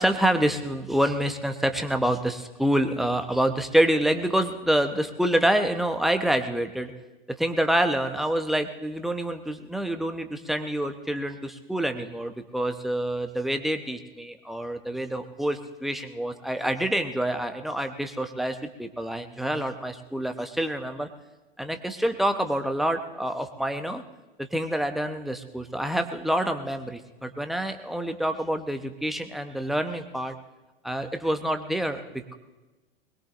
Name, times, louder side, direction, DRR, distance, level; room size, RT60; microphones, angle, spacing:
voice 1, 0.0-6.9 7.4-21.1 21.6-24.0 24.4-30.3 30.8-32.3, right 1 dB, ahead, 7 dB, 0.9 m, -27 dB
21.5 x 20.5 x 2.6 m, 1.1 s
figure-of-eight pair, 90°, 29 cm